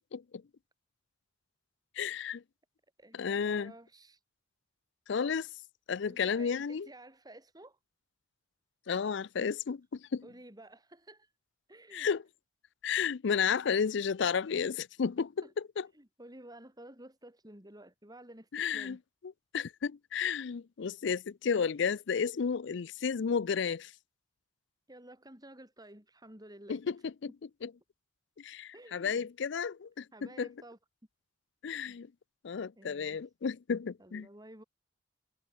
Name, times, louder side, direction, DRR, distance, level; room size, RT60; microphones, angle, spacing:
voice 1, 0.1-0.4 2.0-2.4 3.1-3.7 5.1-5.5 5.9-6.9 8.9-10.2 11.9-12.2 12.8-15.4 15.8-15.9 18.5-19.0 19.5-23.9 26.7-27.3 27.6-27.7 28.4-30.1 30.4-30.5 31.6-32.1 32.4-34.3, left 6 dB, 65° left, 0.5 m, -32 dB
voice 2, 3.0-4.2 6.1-7.8 10.2-11.3 11.7-12.1 15.4-15.5 15.9-19.0 24.9-26.8 28.7-29.3 30.1-30.8 31.9-32.0 32.8-33.2 33.7-34.6, right 1 dB, 20° right, 6.4 m, -52 dB
head